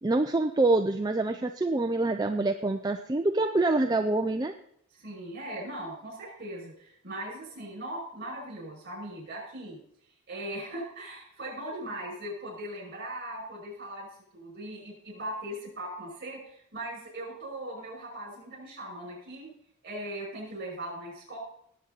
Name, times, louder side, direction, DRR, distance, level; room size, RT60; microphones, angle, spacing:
voice 1, 0.0-4.5, right 2 dB, 20° right, 6 dB, 0.4 m, -26 dB
voice 2, 4.9-9.8 10.3-19.5 19.8-21.4, right 1 dB, 45° right, -1 dB, 5.8 m, -39 dB
18.5 x 7.4 x 4.0 m, 0.68 s
head